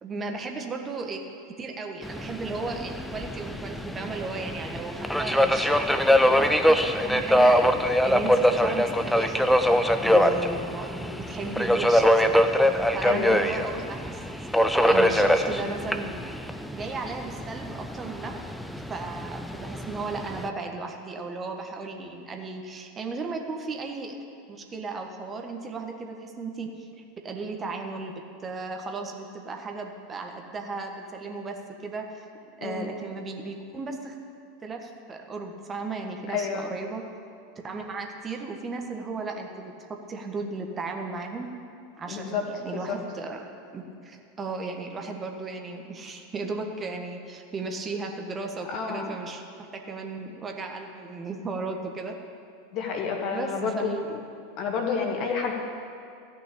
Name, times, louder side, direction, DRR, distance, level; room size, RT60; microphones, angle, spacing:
voice 1, 0.0-1.2 1.6-9.5 10.0-12.4 12.7-14.2 14.6-16.2 16.7-18.4 18.7-24.1 24.5-32.3 32.6-34.2 34.6-37.0 37.6-41.5 42.0-43.4 43.7-52.1 53.3-54.1, right 3 dB, 25° right, 3 dB, 1.4 m, -35 dB
Subway metro underground, 2.0-20.5, equal, ahead, 0.7 m, -23 dB
voice 2, 13.0-13.5 32.6-32.8 36.3-36.7 42.1-42.4 42.9-43.0 48.7-49.2 52.7-54.2 54.6-55.5, left 5 dB, 45° left, 2 dB, 2.0 m, -29 dB
14.5 x 6.3 x 8.6 m, 2.4 s
figure-of-eight pair, 85°, 0 cm